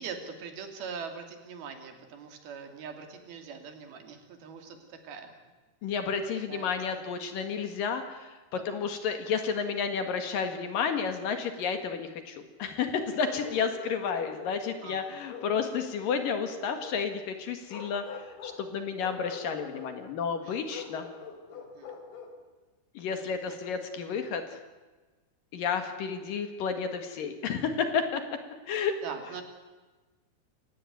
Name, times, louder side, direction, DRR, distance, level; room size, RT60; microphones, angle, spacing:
voice 1, 0.0-5.3 6.5-7.1 14.8-15.1 20.4-20.6 21.5-21.9 23.5-23.6 29.0-29.4, right 6 dB, 80° right, 5 dB, 4.6 m, -42 dB
voice 2, 5.8-21.1 22.9-24.6 25.5-28.2 28.7-29.0, left 6 dB, 65° left, 7 dB, 3.3 m, -31 dB
Bark, 13.2-14.8 15.3-17.0 17.7-18.6 19.0-19.9 20.7-22.4, left 5 dB, 85° left, 5.0 m, -44 dB
28.5 x 15.5 x 9.3 m, 1.3 s
omnidirectional pair, 4.3 m